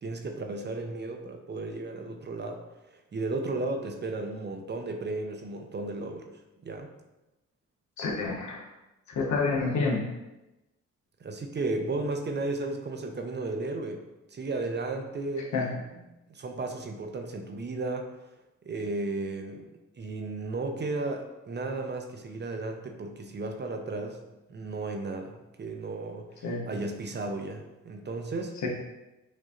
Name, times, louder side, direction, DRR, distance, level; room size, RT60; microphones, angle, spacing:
voice 1, 0.0-2.6 3.1-6.3 6.6-6.9 11.2-14.0 14.3-15.5 16.3-18.1 18.6-19.7 20.0-24.2 24.5-28.5, right 2 dB, 35° right, 4 dB, 0.6 m, -34 dB
voice 2, 8.0-8.7 9.1-10.1 15.4-15.8 26.4-26.6 28.6-28.7, left 3 dB, 70° left, -1 dB, 1.1 m, -28 dB
6.3 x 2.7 x 2.5 m, 0.99 s
supercardioid pair, 60°, 30 cm